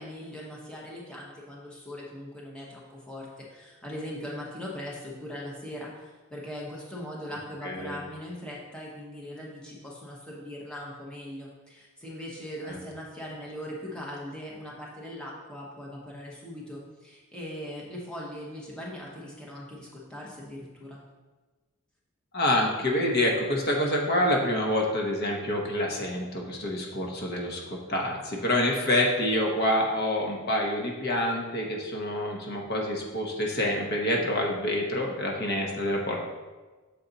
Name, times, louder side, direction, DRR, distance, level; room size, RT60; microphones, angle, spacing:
voice 1, 0.0-21.0, left 1 dB, 5° left, -5 dB, 0.9 m, -40 dB
voice 2, 7.6-8.0 12.6-12.8 22.3-27.6 27.9-36.2, left 1 dB, 45° left, 0 dB, 0.9 m, -27 dB
6.9 x 4.1 x 4.0 m, 1.3 s
head